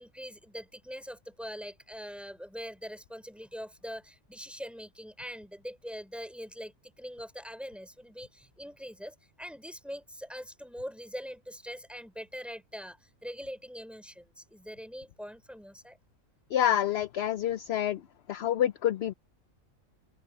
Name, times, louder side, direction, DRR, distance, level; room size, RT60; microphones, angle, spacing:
voice 1, 0.0-16.0, equal, ahead, 3.9 m, -43 dB
voice 2, 16.5-18.0 18.3-19.1, left 11 dB, 60° left, 0.8 m, -27 dB
open air
omnidirectional pair, 1.4 m